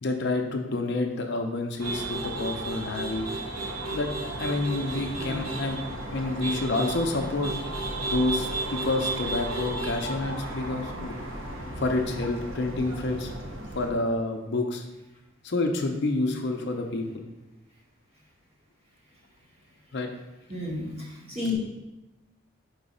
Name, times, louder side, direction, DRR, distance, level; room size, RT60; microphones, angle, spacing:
voice 1, 0.0-3.3 3.9-4.1 4.4-5.8 6.1-7.6 8.0-11.1 11.8-13.3 13.7-14.8 15.4-17.3 19.9-20.1 21.2-21.4, left 2 dB, 50° left, 4 dB, 0.5 m, -28 dB
sound 1, 1.8-13.9, right 2 dB, 65° right, 0.9 m, -34 dB
voice 2, 5.1-5.5 20.5-21.5, left 3 dB, 30° right, -5 dB, 1.5 m, -32 dB
4.8 x 3.9 x 5.2 m, 1.0 s
head